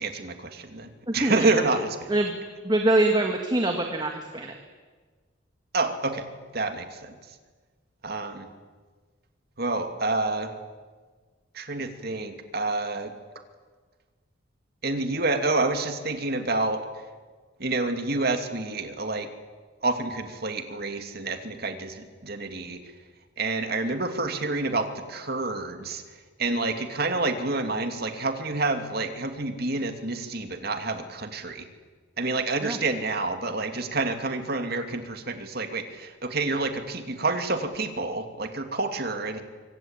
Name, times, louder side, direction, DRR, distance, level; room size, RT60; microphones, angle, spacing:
voice 1, 0.0-2.2 5.7-6.3 6.5-7.2 8.0-8.5 9.6-10.5 11.5-13.1 14.8-16.8 17.6-19.3 19.8-22.8 23.4-26.0 26.4-31.7 32.2-39.4, right 3 dB, 55° right, 6 dB, 2.7 m, -28 dB
voice 2, 1.1-1.5 2.1-2.4 2.6-4.5 32.6-32.8, right 1 dB, 20° right, 3 dB, 2.0 m, -24 dB
24.5 x 24.5 x 9.1 m, 1.4 s
head